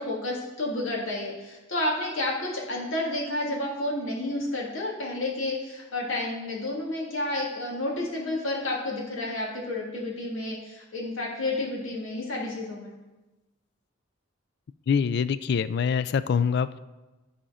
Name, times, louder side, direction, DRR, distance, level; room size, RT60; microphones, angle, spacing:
voice 1, 0.0-12.9, left 2 dB, 85° left, -2 dB, 2.1 m, -30 dB
voice 2, 14.9-16.8, left 6 dB, 55° left, 16 dB, 0.3 m, -25 dB
12.5 x 4.4 x 4.9 m, 1.1 s
head